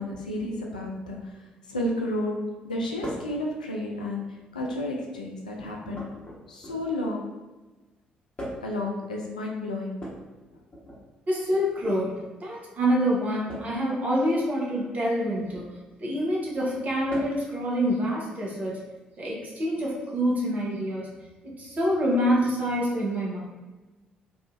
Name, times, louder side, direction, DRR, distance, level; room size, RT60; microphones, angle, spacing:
voice 1, 0.0-6.1 6.5-7.4 8.6-10.0, left 1 dB, 85° left, -1 dB, 0.3 m, -32 dB
sound 1, 3.0-3.4 4.4-4.9 5.9-7.0 8.4-8.8 9.9-11.0 11.7-12.0 13.5-13.8 15.4-15.7 17.1-17.5 19.0-19.1 20.3-20.4, equal, 30° left, 1.1 m, -40 dB
voice 2, 11.3-15.7 16.0-18.8 19.2-21.1 21.4-23.4, equal, 40° right, -4 dB, 0.9 m, -26 dB
2.7 x 2.4 x 2.4 m, 1.2 s
figure-of-eight pair, 45°, 4 cm